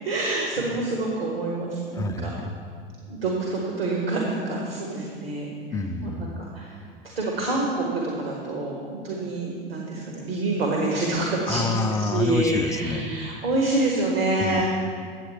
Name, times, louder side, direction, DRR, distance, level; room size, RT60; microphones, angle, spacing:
voice 1, 0.0-2.3 3.1-5.5 6.0-6.7 7.2-8.8 9.0-11.7 12.1-14.6, right 2 dB, 80° right, -2 dB, 1.5 m, -26 dB
voice 2, 1.9-2.5 5.7-6.4 11.5-13.1 14.4-14.6, left 4 dB, 10° left, 7 dB, 0.4 m, -28 dB
9.1 x 7.9 x 4.3 m, 2.1 s
figure-of-eight pair, 85°, 29 cm